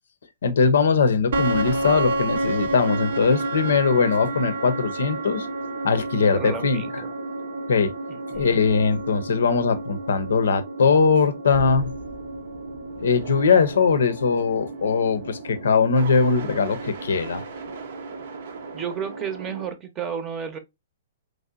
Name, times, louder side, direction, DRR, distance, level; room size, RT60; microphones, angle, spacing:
voice 1, 0.4-5.5 5.8-7.0 7.7-7.9 8.3-11.9 13.0-17.4, left 5 dB, 75° left, 0.5 m, -21 dB
sound 1, 1.3-19.7, right 2 dB, 65° right, 0.7 m, -31 dB
voice 2, 6.3-7.1 8.1-8.6 18.7-20.6, right 7 dB, 25° right, 0.7 m, -32 dB
3.1 x 2.6 x 2.3 m
hypercardioid pair, 125°, 0 cm